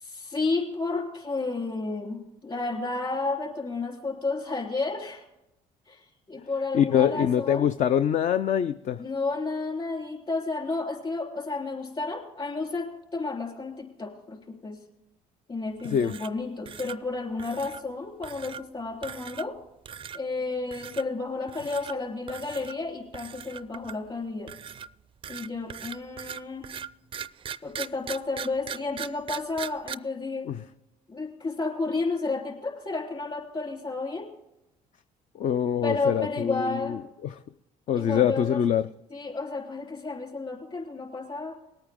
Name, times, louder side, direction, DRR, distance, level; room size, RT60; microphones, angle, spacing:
voice 1, 0.0-5.3 5.9-6.0 6.3-7.7 9.0-12.9 13.1-14.8 15.5-19.5 20.1-24.5 25.3-26.7 27.6-30.5 31.1-34.3 35.8-37.0 37.9-38.6 39.1-41.6, left 3 dB, 35° left, 1 dB, 3.5 m, -31 dB
voice 2, 6.7-9.0 15.8-16.1 30.4-30.6 35.3-37.4 37.9-38.9, left 9 dB, 55° left, 11 dB, 0.5 m, -24 dB
sound 1, 15.8-16.4 16.7-17.0 17.4-17.8 18.2-18.6 19.0-19.6 19.9-20.2 20.7-21.0 21.5-21.9 22.3-22.7 23.1-24.1 24.5-29.9, right 8 dB, 35° right, 0.4 m, -39 dB
19.5 x 8.9 x 3.6 m, 0.88 s
supercardioid pair, 75°, 15 cm